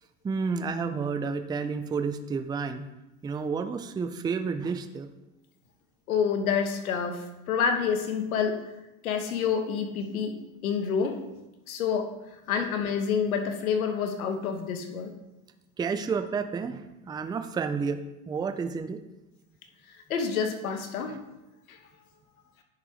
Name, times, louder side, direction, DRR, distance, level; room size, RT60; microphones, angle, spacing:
voice 1, 0.2-2.9 3.2-5.1 15.8-18.0 18.3-19.0 21.1-21.2, right 5 dB, 10° right, 9 dB, 0.5 m, -30 dB
voice 2, 6.1-8.6 9.0-10.3 10.6-11.2 11.7-12.1 12.5-15.1 20.1-21.2 21.7-21.8, left 6 dB, 85° left, 5 dB, 1.5 m, -28 dB
10.0 x 4.6 x 5.0 m, 0.95 s
hypercardioid pair, 100°, 41 cm